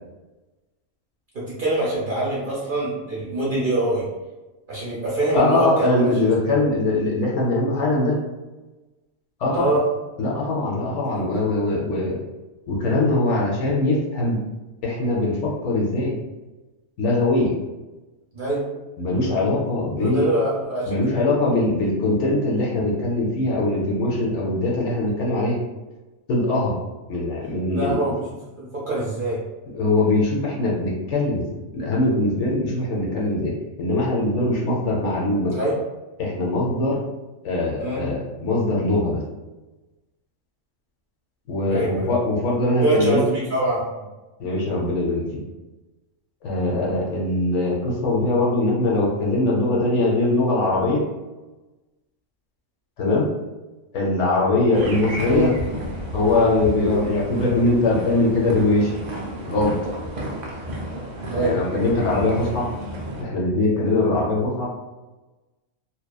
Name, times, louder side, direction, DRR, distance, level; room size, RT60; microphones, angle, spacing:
voice 1, 1.3-4.1 4.7-6.3 9.5-9.8 11.1-11.3 18.3-18.6 20.0-20.9 27.7-29.4 35.5-35.7 37.8-38.1 41.7-42.1 42.8-43.8 55.2-55.5 61.3-61.5, right 1 dB, 50° right, -7 dB, 0.7 m, -24 dB
voice 2, 5.3-8.2 9.4-9.7 10.2-12.2 12.7-14.4 14.8-16.1 17.0-17.5 19.0-20.3 20.9-25.6 26.3-26.7 27.1-28.0 29.7-35.5 36.2-37.0 37.4-39.2 41.5-43.2 44.4-45.4 46.4-51.0 53.0-53.3 53.9-55.5 56.1-58.9 59.4-59.7 61.3-62.6 63.2-64.7, left 2 dB, 65° left, -3 dB, 0.8 m, -22 dB
sound 1, 54.7-63.2, right 1 dB, 85° right, 0.3 m, -32 dB
2.8 x 2.1 x 2.2 m, 1.1 s
omnidirectional pair, 1.4 m